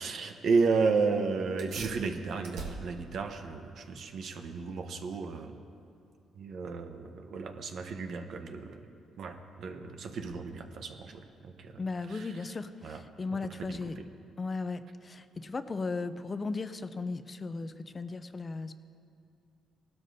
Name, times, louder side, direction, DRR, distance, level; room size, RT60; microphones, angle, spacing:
voice 1, 0.0-5.5 6.4-8.8 9.2-11.7 12.1-12.2 12.8-13.0, right 4 dB, 65° right, 6 dB, 0.9 m, -32 dB
sound 1, 1.6-11.5, right 3 dB, 90° right, 1.6 m, -50 dB
voice 2, 11.8-14.0 14.4-18.7, left 3 dB, 30° left, 11 dB, 0.5 m, -36 dB
18.5 x 12.5 x 2.7 m, 2.5 s
cardioid pair, 90°, 0 cm